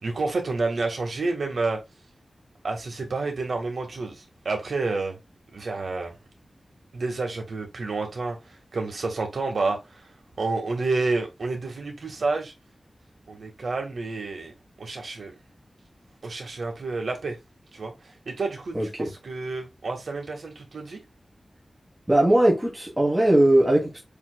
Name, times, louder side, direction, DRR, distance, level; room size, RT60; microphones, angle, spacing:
voice 1, 0.0-1.8 2.6-5.2 5.5-6.1 6.9-8.4 8.7-10.1 10.4-12.5 13.3-15.3 16.2-17.4 17.7-21.0, right 3 dB, 80° right, 1.6 m, -29 dB
voice 2, 18.7-19.1 22.1-24.0, right 1 dB, 10° right, 1.4 m, -20 dB
7.2 x 3.0 x 2.2 m
wide cardioid pair, 100°, 0 cm